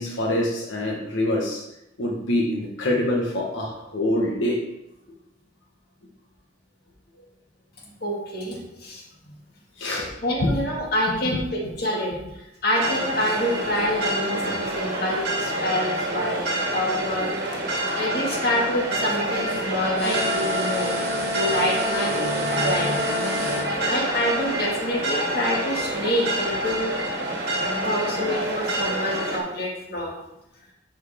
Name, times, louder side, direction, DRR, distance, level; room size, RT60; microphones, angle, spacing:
voice 1, 0.0-1.6 2.0-4.6 9.8-10.1 22.2-22.9 23.4-23.7, left 1 dB, 80° left, -2 dB, 1.2 m, -26 dB
voice 2, 8.0-9.0 9.9-17.3 17.6-20.9 21.3-23.6 23.9-26.8 27.8-30.1, left 1 dB, 50° left, -2 dB, 1.9 m, -27 dB
sound 1, 12.7-29.4, right 1 dB, 55° right, 1.8 m, -27 dB
sound 2, 20.0-23.7, left 2 dB, 30° right, 1.7 m, -29 dB
11.0 x 4.6 x 3.5 m, 0.89 s
head